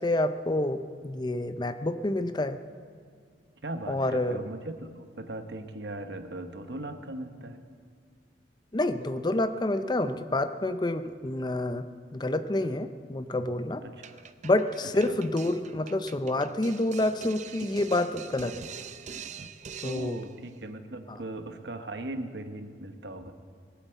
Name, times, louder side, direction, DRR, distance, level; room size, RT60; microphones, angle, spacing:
voice 1, 0.0-2.6 3.9-4.4 8.7-11.9 12.1-13.8 14.4-18.7 19.8-20.2 21.1-21.2, left 1 dB, 25° left, 11 dB, 0.5 m, -28 dB
voice 2, 3.6-7.6 13.8-13.9 15.1-15.2 19.8-23.3, right 1 dB, 65° right, 8 dB, 1.1 m, -38 dB
sound 1, 14.0-20.3, right 6 dB, 40° right, 0.5 m, -43 dB
18.5 x 8.3 x 8.0 m, 2.1 s
head